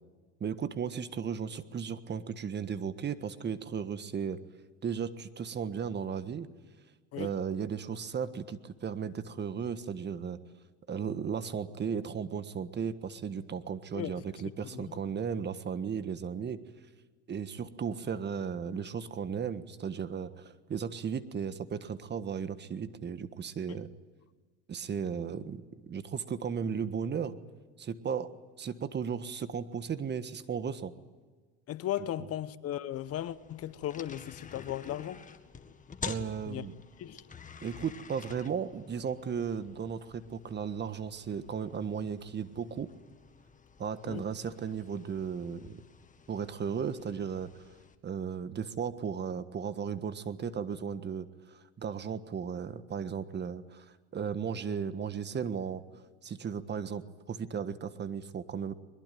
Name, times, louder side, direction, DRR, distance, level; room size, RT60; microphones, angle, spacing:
voice 1, 0.4-4.4 4.8-6.5 7.2-10.4 10.9-16.6 17.3-20.4 20.7-23.9 24.7-27.4 27.8-28.3 28.6-30.9 36.0-36.7 37.6-42.9 43.8-45.8 46.3-47.5 48.0-53.8 54.1-55.8 56.2-58.7, right 7 dB, 30° right, 1.5 m, -35 dB
voice 2, 13.9-14.2 14.7-14.8 23.7-23.8 31.7-35.2 36.5-36.6 37.0-37.2 44.1-44.3, left 12 dB, 45° left, 1.0 m, -36 dB
sound 1, 32.9-48.0, left 5 dB, 25° left, 1.9 m, -49 dB
22.0 x 21.0 x 9.2 m
supercardioid pair, 95°, 34 cm